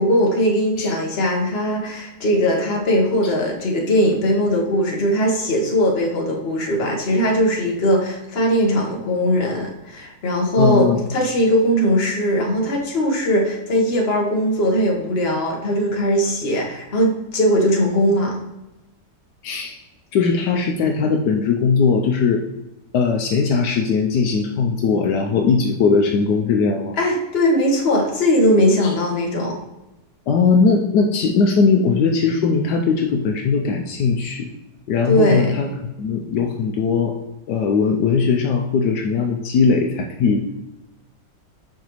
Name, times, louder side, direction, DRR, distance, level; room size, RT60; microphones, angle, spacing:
voice 1, 0.0-18.4 27.0-29.6 35.1-35.5, equal, 40° left, -1 dB, 1.4 m, -19 dB
voice 2, 10.6-11.0 19.4-19.7 20.1-22.4 22.9-27.0 28.8-28.9 30.3-34.5 34.9-35.7 36.0-37.1 37.5-40.5, left 5 dB, 75° left, 2 dB, 1.2 m, -19 dB
7.2 x 5.4 x 3.0 m, 0.94 s
omnidirectional pair, 1.9 m